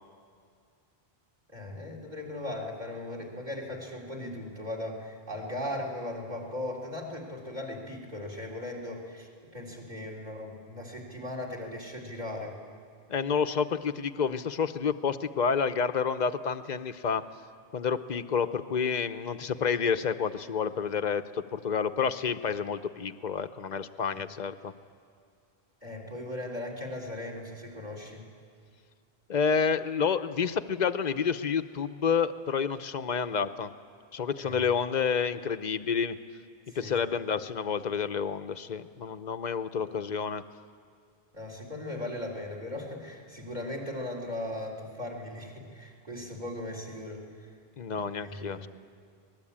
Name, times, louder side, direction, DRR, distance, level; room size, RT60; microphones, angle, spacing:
voice 1, 1.5-12.6 24.1-24.2 25.8-28.3 34.4-34.6 36.7-37.2 41.3-47.5 47.9-48.7, left 1 dB, 40° right, 1 dB, 3.9 m, -38 dB
voice 2, 13.1-17.2 17.7-24.7 29.3-33.7 34.1-36.2 36.8-40.4 47.8-48.7, left 6 dB, 45° left, 11 dB, 0.8 m, -29 dB
25.5 x 19.5 x 8.7 m, 2.3 s
omnidirectional pair, 1.1 m